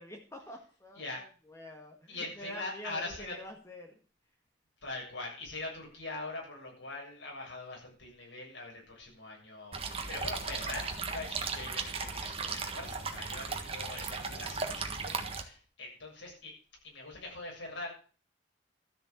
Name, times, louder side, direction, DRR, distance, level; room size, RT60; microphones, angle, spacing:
voice 1, 0.0-4.0, left 1 dB, 15° left, 2 dB, 1.9 m, -47 dB
voice 2, 2.1-3.3 4.8-16.5 16.8-17.9, left 2 dB, 80° left, -1 dB, 7.4 m, -42 dB
sound 1, 9.7-15.4, right 4 dB, 30° right, 1.5 m, -36 dB
13.0 x 6.9 x 8.5 m, 0.40 s
head